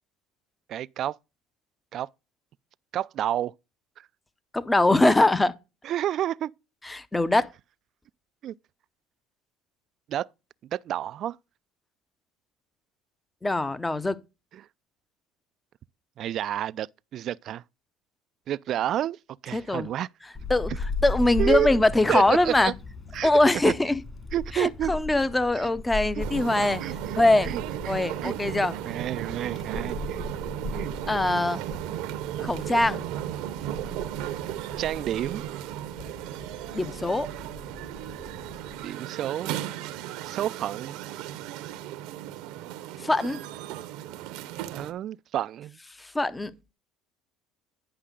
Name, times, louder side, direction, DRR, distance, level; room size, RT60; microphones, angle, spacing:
voice 1, 0.7-1.2 1.9-2.1 2.9-3.5 4.0-4.1 5.8-6.5 8.4-8.5 10.1-10.3 10.7-11.4 14.5-14.7 16.2-16.9 17.1-17.6 18.5-20.1 21.4-21.7 22.1-22.7 23.1-23.3 23.6-23.7 24.3-24.9 25.6-25.7 26.8-27.2 27.4-27.9 28.2-28.6 28.9-30.2 30.7-30.9 34.8-35.5 38.8-39.5 40.2-41.0 44.7-45.8, right 11 dB, 55° right, 0.3 m, -30 dB
voice 2, 4.5-5.5 6.8-7.5 13.4-14.2 19.5-19.9 20.5-20.7 21.0-22.7 23.2-24.0 24.5-26.8 27.2-27.5 27.9-28.8 31.1-31.6 32.4-33.0 36.7-37.3 43.0-43.4 46.0-46.6, left 2 dB, 10° left, 0.7 m, -22 dB
Wind, 20.3-38.9, left 3 dB, 30° left, 2.6 m, -38 dB
sound 1, 26.2-44.9, right 12 dB, 75° right, 0.8 m, -35 dB
10.0 x 5.5 x 3.7 m
supercardioid pair, 95°, 0 cm